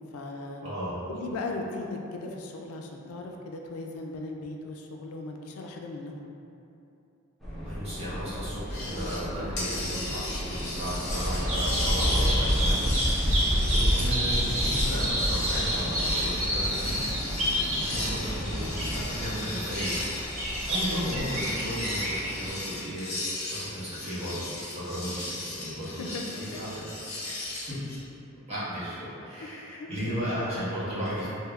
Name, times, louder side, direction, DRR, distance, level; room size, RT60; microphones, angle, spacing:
voice 1, 0.0-0.6 1.1-6.2 13.5-13.8 20.8-21.1 25.8-26.2 26.5-26.6 29.4-30.3, left 2 dB, 80° left, 1 dB, 0.3 m, -38 dB
voice 2, 0.6-0.9 7.6-17.1 17.8-20.1 20.7-23.1 23.5-27.4 27.7-27.8 28.5-31.3, equal, 30° right, -11 dB, 1.0 m, -35 dB
sound 1, 7.4-19.3, equal, ahead, 0.6 m, -35 dB
sound 2, 8.7-9.3 9.6-28.0, left 2 dB, 50° left, 0.8 m, -36 dB
Bird vocalization bird call bird song, 11.1-22.5, equal, 75° right, 1.0 m, -28 dB
3.4 x 2.7 x 2.3 m, 2.8 s
head